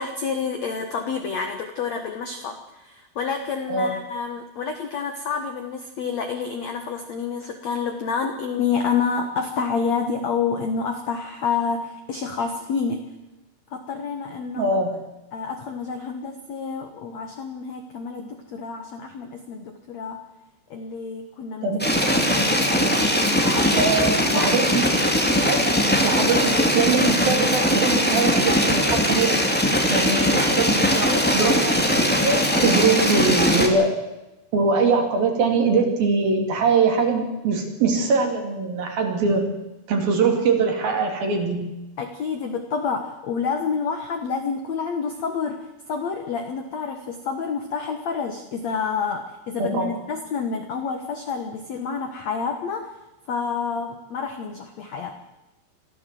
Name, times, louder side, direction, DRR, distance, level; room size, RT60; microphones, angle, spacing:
voice 1, 0.0-13.0 13.7-14.8 15.3-20.2 20.7-21.7 22.0-22.5 23.4-24.6 42.0-52.9 53.3-55.2, left 5 dB, 75° left, 5 dB, 1.6 m, -28 dB
voice 2, 14.6-15.0 21.6-21.9 23.8-24.9 25.3-29.4 29.9-34.0 34.5-39.5 39.9-41.8 49.7-49.9, right 4 dB, 55° right, 3 dB, 4.5 m, -22 dB
sound 1, 21.8-33.7, equal, 5° left, 0.7 m, -20 dB
24.0 x 15.0 x 7.8 m, 0.98 s
omnidirectional pair, 5.3 m